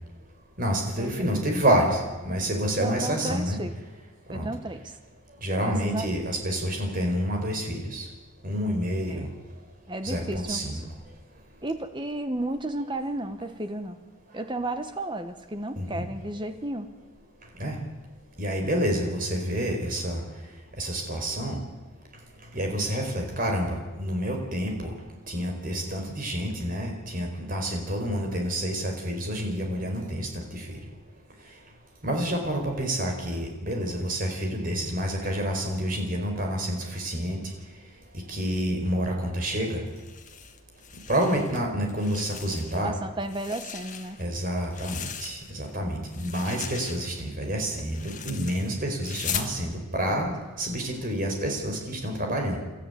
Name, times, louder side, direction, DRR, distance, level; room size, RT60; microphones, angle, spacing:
voice 1, 0.6-3.6 4.3-4.5 5.4-8.1 8.4-9.3 10.0-10.8 15.8-16.0 17.6-17.8 18.4-20.2 20.8-21.6 22.5-24.9 25.3-30.8 32.0-37.4 38.3-39.8 41.1-42.9 44.2-52.6, equal, 40° right, 2 dB, 4.5 m, -28 dB
voice 2, 2.8-3.8 4.3-4.9 5.6-6.1 9.1-9.3 9.9-10.8 11.6-14.0 14.3-16.9 42.7-44.2, right 1 dB, 20° right, 8 dB, 1.2 m, -33 dB
sound 1, 39.9-41.6 41.9-42.9 43.2-45.7 46.0-49.5, left 8 dB, 35° left, 1.6 m, -39 dB
29.5 x 13.5 x 9.4 m, 1.2 s
head